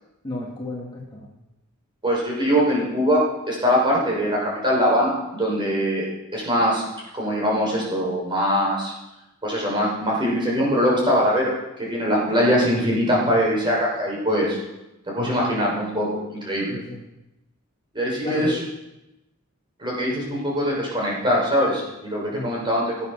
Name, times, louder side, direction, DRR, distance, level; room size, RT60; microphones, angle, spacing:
voice 1, 0.2-1.4 16.7-17.0 18.2-18.6 22.3-22.6, left 1 dB, 20° left, -3 dB, 2.3 m, -32 dB
voice 2, 2.0-6.1 6.3-6.8 7.1-8.9 9.4-11.5 11.8-14.6 15.1-16.8 17.9-18.6 19.8-23.1, equal, 20° right, -4 dB, 5.9 m, -22 dB
17.5 x 8.5 x 6.7 m, 0.94 s
head